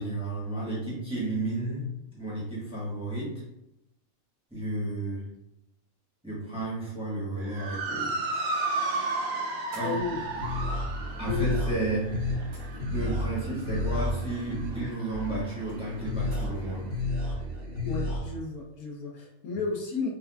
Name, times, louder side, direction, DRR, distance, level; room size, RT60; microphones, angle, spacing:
voice 1, 0.0-3.4 4.5-5.3 6.2-8.2 9.7-10.0 11.2-12.0 12.9-16.9, right 2 dB, 5° right, -7 dB, 1.2 m, -32 dB
Motor vehicle (road) / Siren, 7.4-16.0, right 3 dB, 85° right, 1.1 m, -34 dB
sound 1, 9.7-10.2 11.6-11.7 12.5-13.1 15.1-15.2 16.3-16.7, right 1 dB, 70° right, 1.2 m, -52 dB
voice 2, 9.8-10.2 11.0-11.5 17.8-20.1, left 4 dB, 85° left, -2 dB, 1.3 m, -33 dB
sound 2, 10.0-18.2, left 1 dB, 30° right, 1.1 m, -32 dB
4.4 x 2.4 x 2.3 m, 0.84 s
omnidirectional pair, 1.5 m